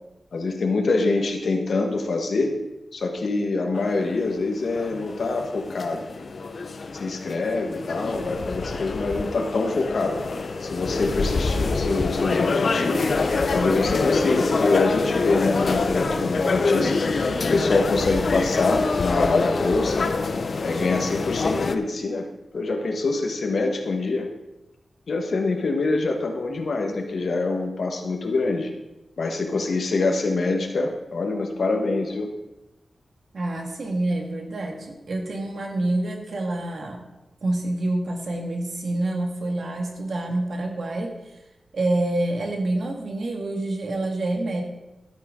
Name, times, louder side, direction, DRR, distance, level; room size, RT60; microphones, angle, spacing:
voice 1, 0.3-2.5 2.9-6.0 6.9-10.2 10.6-20.1 20.6-22.3 22.5-24.3 25.1-28.7 29.2-32.3, left 3 dB, 75° left, 4 dB, 1.4 m, -25 dB
sound 1, 3.7-21.8, left 3 dB, 60° left, 0.6 m, -25 dB
voice 2, 33.3-37.0 37.4-41.1 41.7-44.6, right 2 dB, 65° right, 2 dB, 1.8 m, -27 dB
12.0 x 8.8 x 3.8 m, 0.98 s
wide cardioid pair, 130°, 0 cm